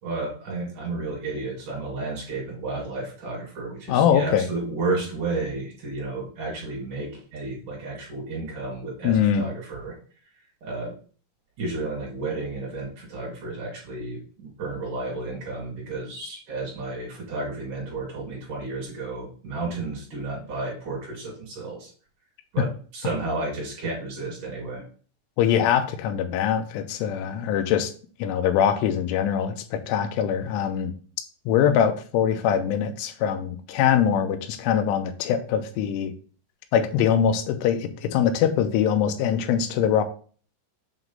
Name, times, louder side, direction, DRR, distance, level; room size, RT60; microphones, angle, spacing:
voice 1, 0.0-10.0 10.6-10.9 11.6-21.9 22.5-24.8, right 3 dB, 50° right, -2 dB, 3.0 m, -32 dB
voice 2, 3.9-4.5 9.0-9.5 25.4-27.9 28.2-30.9 31.5-36.1 36.7-40.0, left 8 dB, 90° left, 7 dB, 3.2 m, -23 dB
7.7 x 3.0 x 5.4 m, 0.41 s
omnidirectional pair, 5.5 m